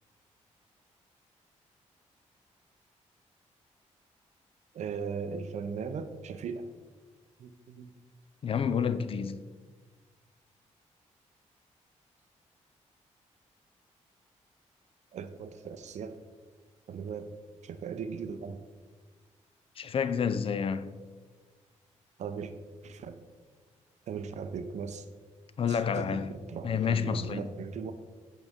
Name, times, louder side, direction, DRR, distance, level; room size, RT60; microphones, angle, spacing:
voice 1, 4.7-6.6 7.4-7.9 15.1-16.2 16.9-17.3 17.6-18.6 22.2-22.5 22.8-23.2 24.1-25.1 25.7-27.9, right 6 dB, 65° right, 0.5 m, -38 dB
voice 2, 8.4-9.4 19.8-21.0 25.6-26.3 26.6-27.5, left 7 dB, 45° left, 0.4 m, -29 dB
8.1 x 4.0 x 3.5 m
cardioid pair, 65°, 13 cm